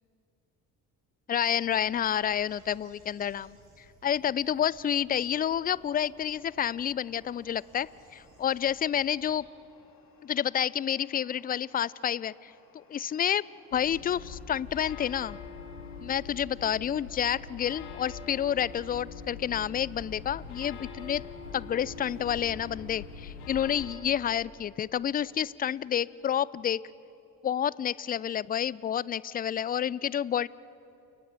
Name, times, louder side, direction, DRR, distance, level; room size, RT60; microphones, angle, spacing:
voice 1, 1.3-3.6 4.0-9.4 10.2-13.4 13.7-15.4 16.0-21.2 21.5-26.8 27.4-30.5, left 9 dB, 20° left, 22 dB, 0.4 m, -29 dB
sound 1, 1.6-9.4, right 3 dB, 55° right, 5.9 m, -60 dB
sound 2, 6.2-16.1, left 4 dB, 45° left, 3.8 m, -63 dB
sound 3, 13.7-23.9, left 5 dB, 75° left, 2.7 m, -43 dB
29.5 x 18.0 x 7.2 m, 2.8 s
figure-of-eight pair, 50°, 45 cm